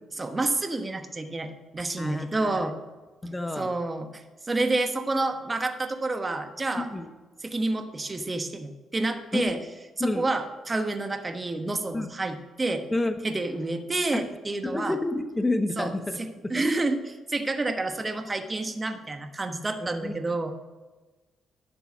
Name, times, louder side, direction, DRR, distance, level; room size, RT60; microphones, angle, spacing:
voice 1, 0.2-2.7 3.6-4.2 4.5-6.9 7.4-9.6 10.0-12.8 13.2-15.0 15.8-15.9 16.2-20.5, right 2 dB, 25° right, 7 dB, 1.2 m, -29 dB
voice 2, 2.0-2.7 3.2-3.7 6.8-7.1 9.3-9.4 10.0-10.3 11.9-12.1 12.9-13.2 14.1-14.2 14.6-16.2 16.5-16.6 20.0-20.1, left 2 dB, 15° left, 7 dB, 1.1 m, -29 dB
11.0 x 7.0 x 6.2 m, 1.2 s
cardioid pair, 90°, 0 cm